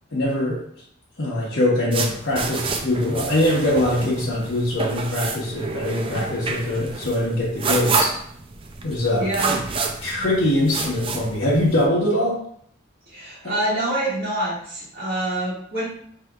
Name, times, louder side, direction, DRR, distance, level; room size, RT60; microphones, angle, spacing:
voice 1, 0.1-0.6 1.2-8.1 8.8-9.6 10.0-12.4 13.4-13.5, left 1 dB, 65° left, -9 dB, 1.1 m, -22 dB
sound 1, 1.9-11.9, right 4 dB, 30° right, 0.4 m, -29 dB
voice 2, 9.2-9.6 13.1-15.8, right 1 dB, 50° right, -9 dB, 1.2 m, -26 dB
4.9 x 2.8 x 2.4 m, 0.64 s
head